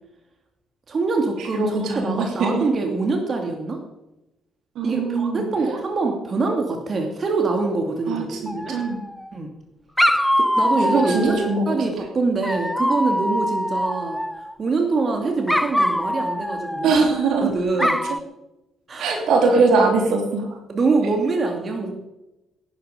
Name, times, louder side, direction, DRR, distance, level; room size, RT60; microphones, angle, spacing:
voice 1, 0.9-3.8 4.8-8.7 9.3-9.5 10.1-11.4 11.7-16.9 17.4-18.0 18.9-19.1 20.7-21.9, right 3 dB, 40° right, 3 dB, 2.6 m, -24 dB
voice 2, 1.5-2.7 4.7-5.4 8.1-8.4 8.7-9.0 10.8-11.6 16.8-17.5 17.8-17.9 19.0-20.6, right 3 dB, 65° right, 3 dB, 3.3 m, -21 dB
Dog, 8.5-9.3 10.0-11.6 12.4-14.5 15.5-17.4 17.8-18.2, equal, 5° left, 0.7 m, -23 dB
17.0 x 12.0 x 5.2 m, 0.95 s
hypercardioid pair, 45°, 0 cm